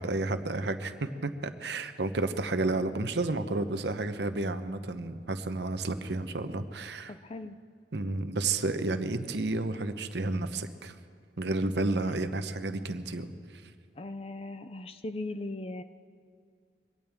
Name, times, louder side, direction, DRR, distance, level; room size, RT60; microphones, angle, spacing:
voice 1, 0.0-7.1 7.9-10.9 11.4-13.7, right 2 dB, 75° right, 9 dB, 0.9 m, -31 dB
voice 2, 7.1-7.6 14.0-15.8, left 2 dB, 35° left, 11 dB, 0.4 m, -38 dB
23.0 x 17.5 x 3.6 m, 2.1 s
head